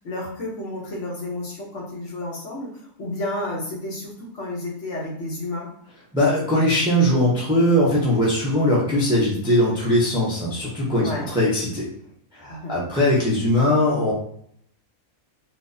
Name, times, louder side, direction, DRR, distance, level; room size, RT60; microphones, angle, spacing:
voice 1, 0.0-5.7 11.0-11.3 12.5-12.8, left 1 dB, 55° left, -3 dB, 1.2 m, -31 dB
voice 2, 6.1-11.9 12.3-14.1, left 1 dB, 5° right, -6 dB, 0.6 m, -20 dB
4.4 x 2.0 x 2.6 m, 0.67 s
omnidirectional pair, 1.5 m